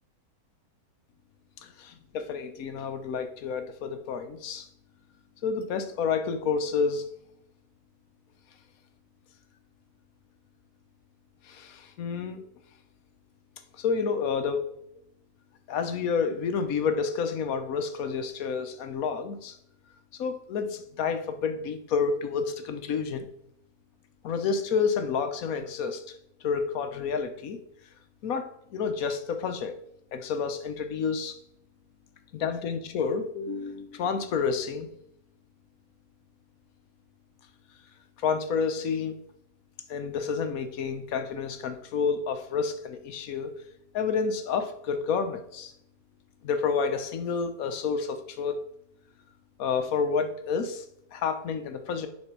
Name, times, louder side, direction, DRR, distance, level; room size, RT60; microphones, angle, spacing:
voice 1, 1.6-4.7 5.4-7.1 11.4-12.4 13.7-14.6 15.7-19.6 20.1-23.3 24.2-26.0 26.4-27.6 28.2-29.7 30.1-31.4 32.3-34.9 38.2-39.1 39.9-43.5 43.9-45.7 46.4-48.6 49.6-50.8 51.1-52.1, left 5 dB, 70° left, 8 dB, 1.2 m, -29 dB
9.8 x 4.3 x 4.5 m, 0.74 s
omnidirectional pair, 1.6 m